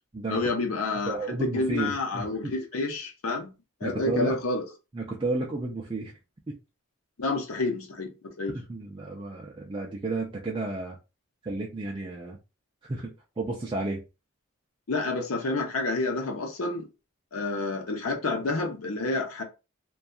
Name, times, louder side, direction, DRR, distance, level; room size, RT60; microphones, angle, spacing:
voice 1, 0.3-3.5 3.8-4.7 7.2-8.6 14.9-16.9 17.3-19.4, left 3 dB, 80° left, 0.7 m, -29 dB
voice 2, 1.1-2.5 3.8-4.4 4.9-6.1 6.5-6.6 8.5-11.0 11.4-12.4 12.8-13.1 13.4-14.0, right 2 dB, 25° right, 0.4 m, -32 dB
2.7 x 2.2 x 2.3 m
head